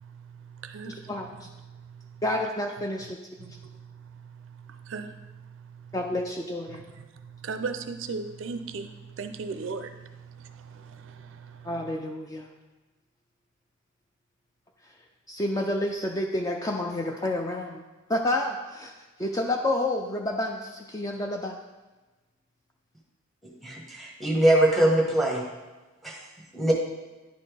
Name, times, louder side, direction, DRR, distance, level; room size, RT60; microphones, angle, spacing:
voice 1, 0.0-1.1 1.6-2.2 3.4-5.9 7.2-11.7, right 4 dB, 65° right, 0.4 m, -39 dB
voice 2, 0.9-1.5 2.2-3.2 5.9-6.8 11.6-12.5 15.3-17.8 18.1-18.9 19.2-21.6, left 1 dB, 15° left, 0.4 m, -29 dB
voice 3, 23.6-25.4 26.0-26.2 26.5-26.7, right 1 dB, ahead, 1.1 m, -22 dB
10.0 x 4.2 x 3.3 m
head